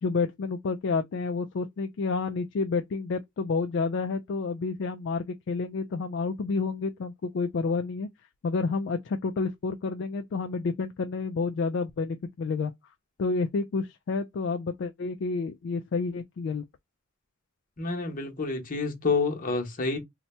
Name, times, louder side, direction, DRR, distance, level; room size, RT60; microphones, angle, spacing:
voice 1, 0.0-8.1 8.4-12.7 13.2-16.6, left 4 dB, 55° left, 0.3 m, -29 dB
voice 2, 17.8-20.0, left 4 dB, 40° left, 0.9 m, -28 dB
2.7 x 2.2 x 4.1 m
head